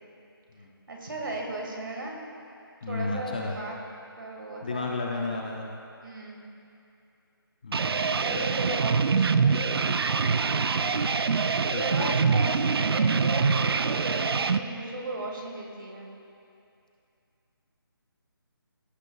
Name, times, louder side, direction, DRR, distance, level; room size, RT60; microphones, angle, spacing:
voice 1, 0.9-2.2 2.9-3.8 4.2-4.9 6.0-6.5 8.1-9.6 11.7-16.1, right 2 dB, 60° right, 0 dB, 1.6 m, -36 dB
voice 2, 2.8-3.6 4.6-5.7 7.6-8.8 10.8-11.1 11.7-12.1, left 3 dB, 20° left, -1 dB, 0.4 m, -34 dB
sound 1, 7.7-14.6, right 5 dB, 75° right, 0.4 m, -24 dB
15.5 x 6.4 x 2.3 m, 2.6 s
figure-of-eight pair, 165°, 13 cm